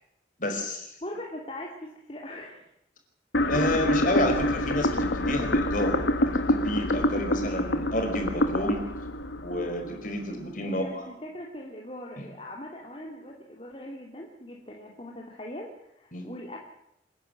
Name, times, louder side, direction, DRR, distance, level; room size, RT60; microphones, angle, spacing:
voice 1, 0.4-0.9 3.5-6.0 6.5-8.8 9.4-10.8 16.1-16.2, left 1 dB, 45° left, 4 dB, 5.0 m, -30 dB
voice 2, 1.0-2.7 10.6-16.6, left 1 dB, 30° left, -1 dB, 2.7 m, -40 dB
sound 1, 3.3-10.4, left 1 dB, 85° left, 1.5 m, -26 dB
27.5 x 11.5 x 9.1 m, 0.79 s
head